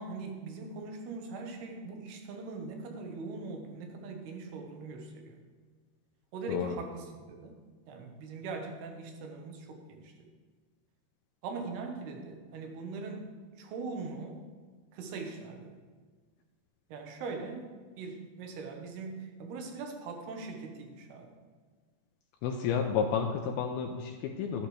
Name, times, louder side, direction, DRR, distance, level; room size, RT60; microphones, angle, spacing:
voice 1, 0.0-5.4 6.3-7.5 7.9-10.1 11.4-13.3 13.6-14.4 14.9-15.7 16.9-17.7 18.0-21.3, right 4 dB, 75° right, 3 dB, 3.2 m, -41 dB
voice 2, 22.4-24.7, left 7 dB, 80° left, 3 dB, 2.4 m, -31 dB
13.0 x 11.0 x 3.3 m, 1.5 s
omnidirectional pair, 4.8 m